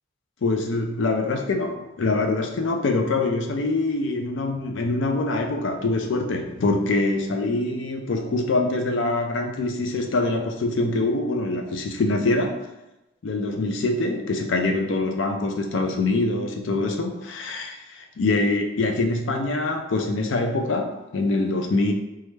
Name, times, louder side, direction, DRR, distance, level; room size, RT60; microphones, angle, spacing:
voice 1, 0.4-12.7 13.2-21.9, left 2 dB, 70° left, 4 dB, 0.4 m, -24 dB
3.1 x 2.3 x 3.2 m, 0.97 s
head